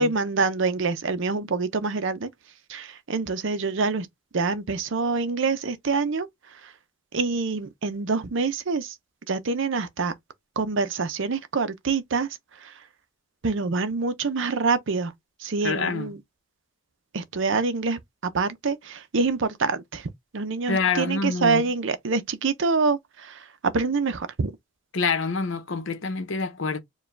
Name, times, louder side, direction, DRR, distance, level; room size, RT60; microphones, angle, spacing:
voice 1, 0.0-2.3 2.7-4.1 4.3-6.7 7.1-9.0 9.3-10.1 10.6-12.3 12.5-12.8 13.4-15.1 15.4-16.2 17.1-24.5, right 4 dB, 60° right, 0.6 m, -26 dB
voice 2, 15.6-16.1 20.7-21.6 24.9-26.8, left 4 dB, 60° left, 0.8 m, -26 dB
4.7 x 2.3 x 3.2 m
head